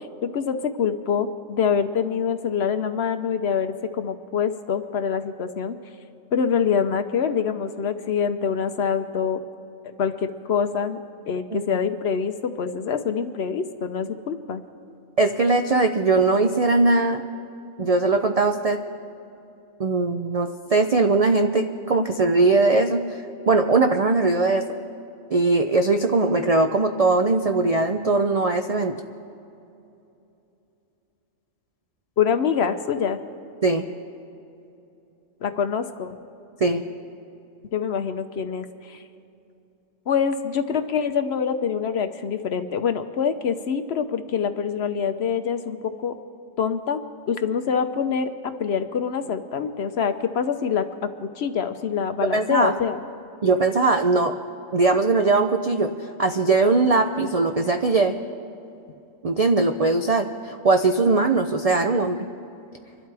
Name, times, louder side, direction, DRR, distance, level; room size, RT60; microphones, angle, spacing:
voice 1, 0.0-5.8 6.3-9.4 9.8-11.0 11.3-14.6 32.2-33.2 35.4-36.2 37.7-39.0 40.1-46.2 46.6-47.0 47.3-53.0, left 7 dB, 60° left, 9 dB, 0.9 m, -25 dB
voice 2, 15.2-17.2 17.8-18.8 19.8-24.6 25.3-28.9 33.6-33.8 36.6-36.8 52.3-52.7 53.4-54.4 54.7-58.1 59.2-62.2, right 3 dB, 60° right, 5 dB, 0.4 m, -20 dB
25.0 x 12.5 x 3.4 m, 2.8 s
omnidirectional pair, 1.4 m